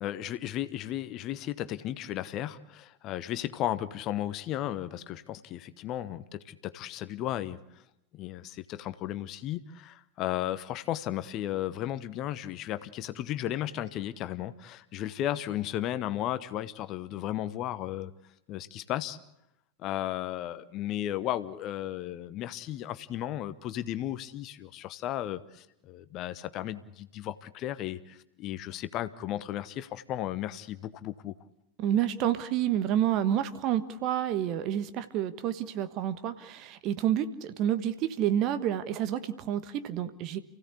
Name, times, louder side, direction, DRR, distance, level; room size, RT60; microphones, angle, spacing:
voice 1, 0.0-7.8 8.1-18.1 18.5-19.2 19.8-31.3, left 13 dB, 35° left, 13 dB, 1.0 m, -35 dB
voice 2, 31.8-40.4, right 10 dB, 40° right, 12 dB, 1.3 m, -29 dB
29.0 x 16.5 x 8.3 m, 0.87 s
figure-of-eight pair, 90°, 0 cm